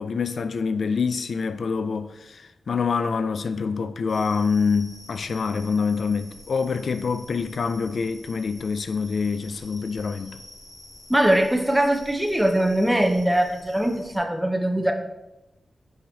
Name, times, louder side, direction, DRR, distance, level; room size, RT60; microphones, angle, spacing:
voice 1, 0.0-10.4, left 5 dB, 75° left, 0.3 m, -26 dB
sound 1, 4.1-14.2, left 1 dB, 55° left, 1.9 m, -47 dB
voice 2, 11.1-14.9, right 1 dB, 5° right, 0.6 m, -21 dB
6.0 x 5.0 x 3.9 m
wide cardioid pair, 140°, 0 cm